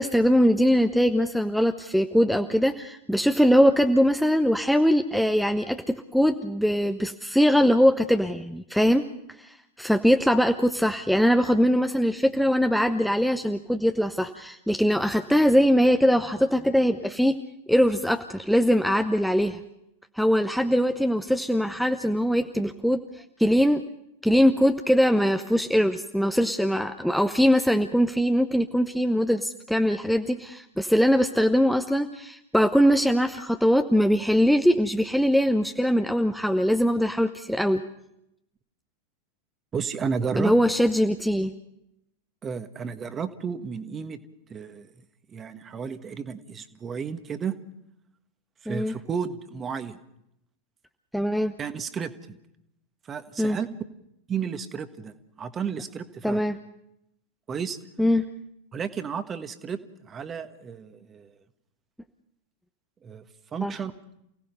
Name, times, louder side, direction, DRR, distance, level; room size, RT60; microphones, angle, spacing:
voice 1, 0.0-9.1 9.4-17.4 17.7-19.6 20.2-23.0 23.4-23.8 24.2-37.8 40.4-41.5 48.7-48.9 51.1-51.5 53.4-53.6 56.2-56.6 58.0-58.2 63.6-63.7, equal, ahead, 7 dB, 0.8 m, -22 dB
voice 2, 39.7-40.6 42.4-44.2 44.5-44.9 45.3-47.6 48.6-50.0 51.6-52.4 53.0-53.7 54.3-56.4 57.5-57.8 58.7-61.3 63.0-63.2 63.5-63.9, right 6 dB, 20° right, 11 dB, 1.4 m, -32 dB
28.5 x 18.0 x 5.4 m, 0.78 s
figure-of-eight pair, 90°, 0 cm